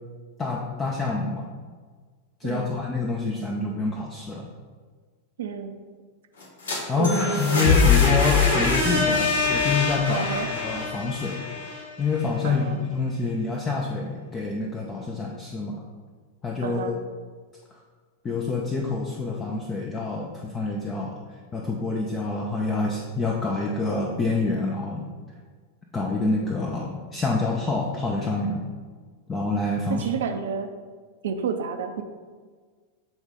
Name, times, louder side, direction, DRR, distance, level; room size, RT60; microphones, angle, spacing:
voice 1, 0.4-1.5 2.4-4.5 6.9-10.3 10.6-11.4 12.0-15.8 16.4-17.0 18.2-21.2 21.5-25.0 25.9-28.6 29.3-30.1, left 3 dB, 20° left, -1 dB, 0.7 m, -27 dB
voice 2, 2.4-2.8 5.4-5.8 7.0-7.7 10.1-10.5 12.4-12.8 16.6-17.0 30.0-30.7 31.2-32.0, right 6 dB, 60° right, 7 dB, 0.5 m, -30 dB
sound 1, 6.4-12.3, left 4 dB, 70° left, 1.5 m, -23 dB
8.1 x 3.9 x 3.6 m, 1.5 s
figure-of-eight pair, 90°, 0 cm